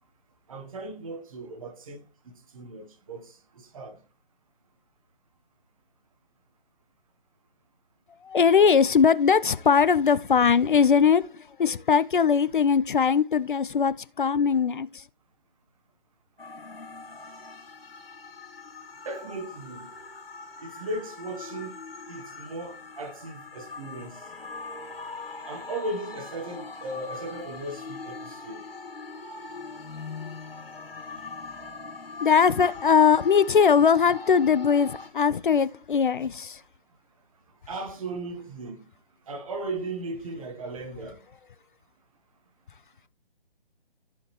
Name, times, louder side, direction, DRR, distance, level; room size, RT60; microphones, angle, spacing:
voice 1, 0.5-2.0 2.5-4.0 19.0-19.9 20.6-21.7 22.1-24.2 25.5-28.7 37.7-38.8 39.3-41.2, right 2 dB, 35° right, 1.1 m, -37 dB
voice 2, 8.3-11.2 11.6-14.9 32.2-36.6, left 6 dB, 55° left, 0.5 m, -20 dB
sound 1, 16.4-35.1, left 4 dB, 75° left, 2.5 m, -41 dB
13.5 x 5.0 x 3.1 m
figure-of-eight pair, 150°, 30 cm